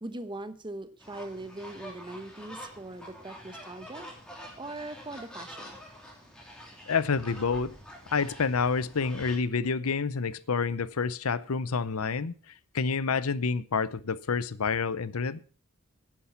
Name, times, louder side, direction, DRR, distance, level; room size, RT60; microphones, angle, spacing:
voice 1, 0.0-4.1 4.6-5.8, right 2 dB, 20° right, 1.1 m, -41 dB
sound 1, 1.0-9.4, equal, 5° left, 3.1 m, -46 dB
voice 2, 6.9-7.8 8.1-15.4, left 5 dB, 80° left, 0.7 m, -28 dB
11.0 x 10.0 x 5.7 m
head